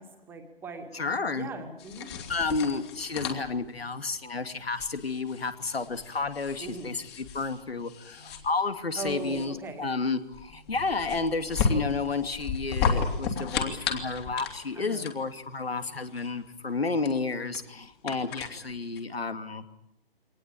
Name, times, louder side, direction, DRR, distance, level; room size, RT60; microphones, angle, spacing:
voice 1, 0.0-2.1 6.6-6.9 9.0-9.8 14.7-15.1, right 3 dB, 5° right, 4 dB, 2.3 m, -39 dB
voice 2, 0.9-1.5 2.3-19.6, left 4 dB, 80° left, 8 dB, 2.7 m, -31 dB
sound 1, 1.8-19.0, left 5 dB, 25° left, 3.0 m, -34 dB
24.0 x 19.5 x 8.7 m, 0.77 s
figure-of-eight pair, 150°, 30 cm